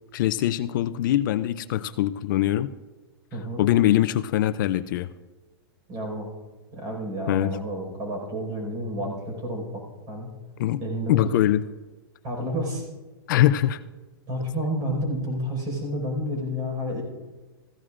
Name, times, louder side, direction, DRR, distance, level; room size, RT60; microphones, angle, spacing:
voice 1, 0.1-2.7 3.6-5.1 7.3-7.6 10.6-10.8 11.1-11.6 13.3-13.8, left 13 dB, 55° left, 13 dB, 0.4 m, -22 dB
voice 2, 3.3-3.7 5.9-6.3 6.7-10.3 10.8-11.2 12.2-12.8 14.3-17.0, equal, 35° right, 1 dB, 4.9 m, -30 dB
15.5 x 15.5 x 2.5 m, 1.2 s
hypercardioid pair, 150°, 13 cm